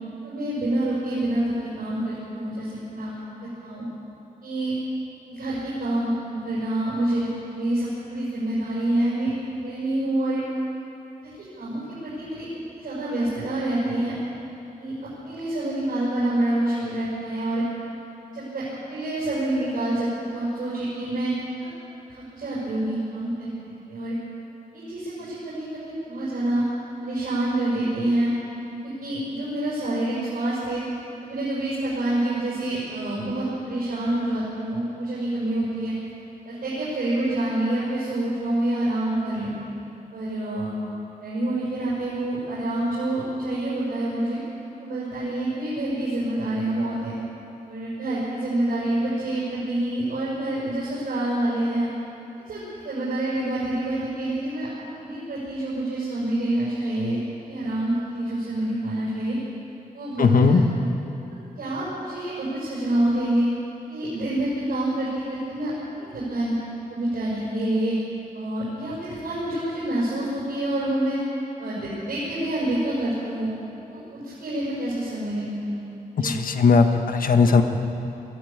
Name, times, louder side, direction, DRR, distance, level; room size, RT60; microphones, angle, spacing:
voice 1, 0.2-3.1 3.4-3.8 4.4-4.8 5.3-9.3 9.6-10.4 11.2-11.3 11.6-12.4 12.7-14.1 14.8-14.9 15.2-17.6 18.3-21.7 22.1-24.1 24.7-26.6 27.0-28.3 28.6-28.7 29.0-30.8 31.2-35.9 36.4-39.5 40.1-40.7 41.2-44.4 44.8-47.1 47.7-51.9 52.5-54.7 55.0-57.2 57.5-59.4 59.9-60.9 61.6-63.5 63.9-65.7 66.0-66.5 66.9-68.0 68.3-71.2 71.6-73.5 73.9-75.8 76.1-76.3, right 1 dB, 85° right, -8 dB, 6.4 m, -27 dB
voice 2, 60.2-60.6 76.2-77.6, left 5 dB, 70° left, 6 dB, 1.4 m, -18 dB
22.0 x 13.5 x 8.8 m, 2.9 s
wide cardioid pair, 135°, 15 cm